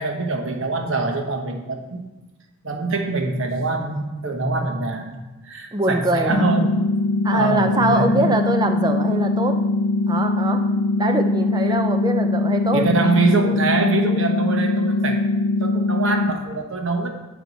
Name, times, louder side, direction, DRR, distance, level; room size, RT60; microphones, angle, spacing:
voice 1, 0.0-2.0 2.6-6.9 7.3-8.3 12.7-15.2 15.6-17.1, right 3 dB, 60° right, 4 dB, 1.1 m, -24 dB
voice 2, 5.7-6.5 7.2-9.6 10.1-10.7 11.0-12.9, right 2 dB, 20° right, 6 dB, 0.5 m, -23 dB
sound 1, 6.3-16.3, left 2 dB, 50° left, 0.5 m, -21 dB
9.1 x 6.2 x 4.0 m, 1.1 s
head